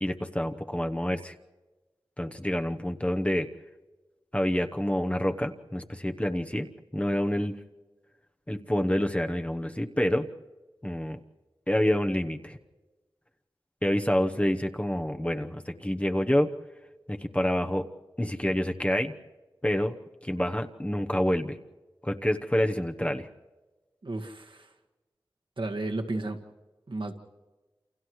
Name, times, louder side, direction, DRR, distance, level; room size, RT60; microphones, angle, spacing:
voice 1, 0.0-1.3 2.2-3.5 4.3-7.6 8.5-10.3 10.8-11.2 11.7-12.6 13.8-16.5 17.1-17.9 18.2-19.1 19.6-19.9 20.2-21.6 22.0-23.3, left 1 dB, 15° left, 5 dB, 1.0 m, -27 dB
voice 2, 24.0-24.7 25.6-26.4 26.9-27.1, right 2 dB, 65° right, 3 dB, 1.8 m, -33 dB
29.0 x 28.5 x 3.2 m, 1.2 s
wide cardioid pair, 45°, 9 cm